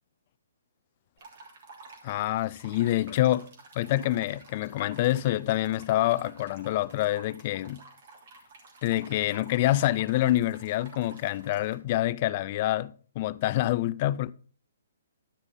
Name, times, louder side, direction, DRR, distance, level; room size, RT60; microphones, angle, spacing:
sound 1, 1.2-11.8, right 3 dB, 50° right, 3.2 m, -51 dB
voice 1, 2.0-7.8 8.8-14.3, left 15 dB, 35° left, 0.4 m, -27 dB
11.5 x 6.0 x 5.3 m
hypercardioid pair, 155°, 0 cm